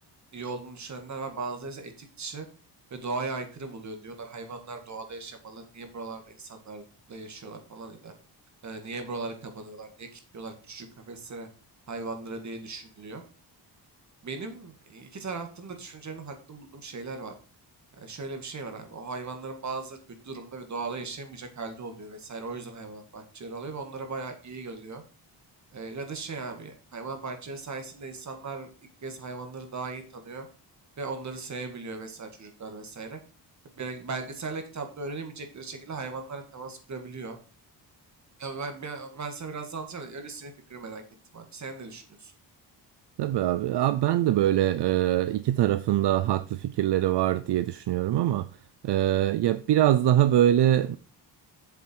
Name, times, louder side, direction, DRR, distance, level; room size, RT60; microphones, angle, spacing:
voice 1, 0.3-2.5 2.9-8.1 8.6-11.5 11.9-13.2 14.2-17.3 18.0-20.0 20.2-25.0 25.7-28.7 29.0-30.5 31.0-33.2 33.8-37.4 38.4-41.0 41.3-42.3, right 3 dB, 40° right, 2.1 m, -38 dB
voice 2, 43.2-48.5 48.8-51.0, right 12 dB, 70° right, 0.6 m, -23 dB
7.9 x 7.1 x 4.6 m
cardioid pair, 130°, 42 cm